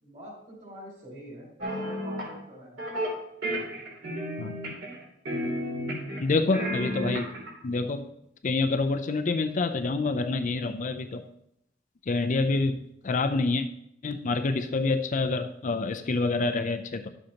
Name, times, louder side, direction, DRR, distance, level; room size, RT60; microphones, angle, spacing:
voice 1, 0.0-2.9, equal, 40° right, -3 dB, 4.1 m, -45 dB
sound 1, 1.6-2.3 2.8-3.1 3.4-5.0 5.3-6.2 6.5-7.5, equal, 65° right, 3.0 m, -32 dB
voice 2, 6.2-7.3 7.6-8.0 8.4-11.2 12.1-12.8 13.0-13.7 14.0-17.1, left 3 dB, 40° left, 7 dB, 0.5 m, -27 dB
11.5 x 7.7 x 2.9 m, 0.78 s
head